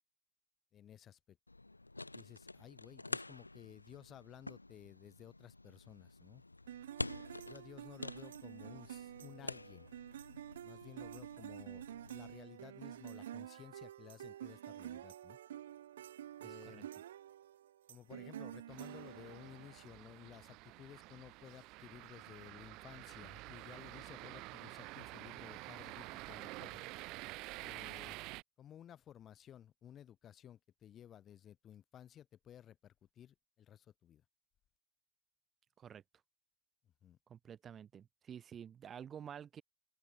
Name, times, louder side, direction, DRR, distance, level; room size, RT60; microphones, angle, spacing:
voice 1, 0.7-1.4 2.1-6.4 7.5-9.9 10.6-15.4 16.4-16.9 17.9-26.9 27.6-28.2 28.6-34.2 37.0-37.2, left 10 dB, 25° left, 1.1 m, -56 dB
sound 1, 1.5-12.4, left 2 dB, 85° left, 0.3 m, -48 dB
sound 2, 6.7-19.9, right 11 dB, 60° right, 1.1 m, -49 dB
voice 2, 16.4-16.8 35.8-36.0 37.3-39.6, right 8 dB, 25° right, 0.8 m, -50 dB
sound 3, 18.7-28.4, right 22 dB, 40° right, 0.3 m, -49 dB
open air
figure-of-eight pair, 90°, 0 cm